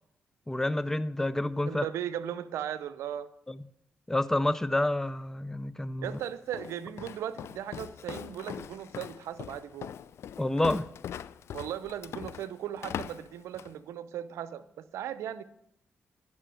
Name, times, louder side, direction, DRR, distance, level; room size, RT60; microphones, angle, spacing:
voice 1, 0.5-1.9 3.5-3.6 4.1-6.2 10.4-10.9, left 1 dB, 10° left, 16 dB, 0.4 m, -28 dB
voice 2, 1.7-3.3 6.0-9.9 11.5-15.4, right 10 dB, 85° right, 14 dB, 0.6 m, -37 dB
Walk footsteps, 6.0-13.8, left 9 dB, 70° left, 0.4 m, -41 dB
11.0 x 5.6 x 7.7 m, 0.77 s
supercardioid pair, 55°, 5 cm